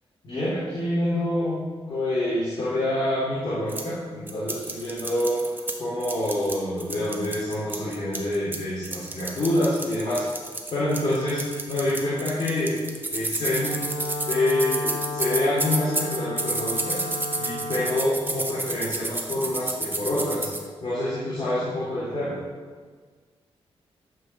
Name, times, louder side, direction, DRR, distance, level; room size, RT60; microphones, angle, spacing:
voice 1, 0.2-1.6 1.9-10.2 10.7-11.4 11.7-12.8 13.1-13.8 14.2-17.0 17.4-20.5 20.8-22.3, left 1 dB, 50° left, -10 dB, 3.9 m, -26 dB
sound 1, 3.7-3.8 4.3-5.7 6.0-8.6 8.8-20.6, right 2 dB, 20° right, 1.2 m, -30 dB
Wind instrument woodwind instrument, 13.6-18.1, left 1 dB, 65° left, 1.8 m, -33 dB
13.0 x 5.6 x 6.9 m, 1.5 s
wide cardioid pair, 150°, 10 cm